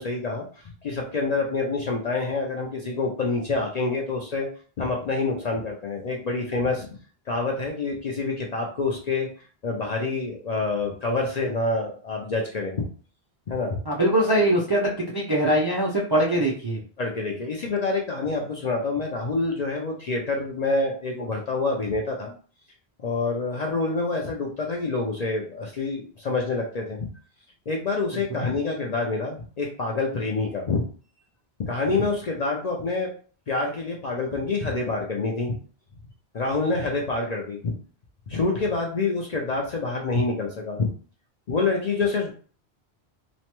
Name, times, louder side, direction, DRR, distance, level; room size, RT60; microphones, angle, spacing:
voice 1, 0.0-4.5 4.8-6.9 7.3-9.3 9.6-12.8 13.5-13.8 17.0-22.3 23.0-27.1 27.7-30.8 31.7-33.1 33.5-35.6 36.3-37.7 38.3-40.9 41.5-42.3, left 3 dB, 55° left, 0 dB, 0.5 m, -27 dB
voice 2, 13.9-16.8, right 1 dB, 40° right, -4 dB, 0.3 m, -22 dB
3.0 x 2.1 x 2.9 m, 0.42 s
omnidirectional pair, 1.1 m